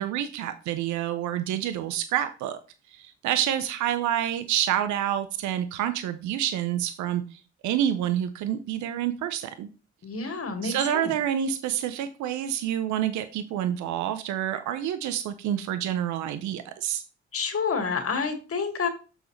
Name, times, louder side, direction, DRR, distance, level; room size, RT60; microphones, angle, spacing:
voice 1, 0.0-2.6 2.9-9.7 10.2-10.3 10.6-17.0, right 10 dB, 75° right, 11 dB, 0.7 m, -28 dB
voice 2, 10.0-11.1 17.3-18.9, left 5 dB, 50° left, 6 dB, 1.9 m, -29 dB
6.7 x 6.3 x 3.1 m, 0.34 s
hypercardioid pair, 45°, 29 cm